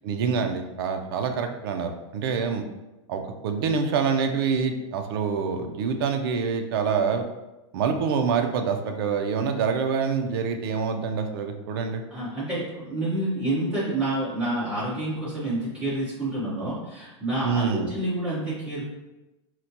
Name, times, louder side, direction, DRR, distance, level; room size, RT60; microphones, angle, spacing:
voice 1, 0.0-2.6 3.1-7.2 7.7-12.0 17.4-17.9, right 6 dB, 50° right, 5 dB, 0.4 m, -26 dB
voice 2, 12.1-18.8, right 1 dB, 5° right, -11 dB, 1.1 m, -28 dB
4.2 x 2.1 x 2.7 m, 1.0 s
supercardioid pair, 175°, 16 cm